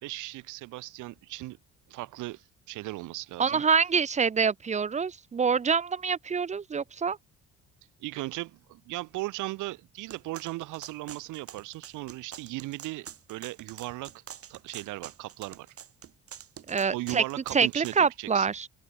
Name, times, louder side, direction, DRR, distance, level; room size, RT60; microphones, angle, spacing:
voice 1, 0.0-1.6 1.9-3.6 8.0-14.2 14.5-15.7 16.9-18.5, right 19 dB, 80° right, 0.5 m, -37 dB
voice 2, 3.4-7.2 16.7-17.2 17.5-18.7, right 6 dB, 25° right, 0.4 m, -26 dB
sound 1, 10.1-18.0, right 9 dB, 50° right, 1.2 m, -46 dB
cardioid pair, 90°, 30 cm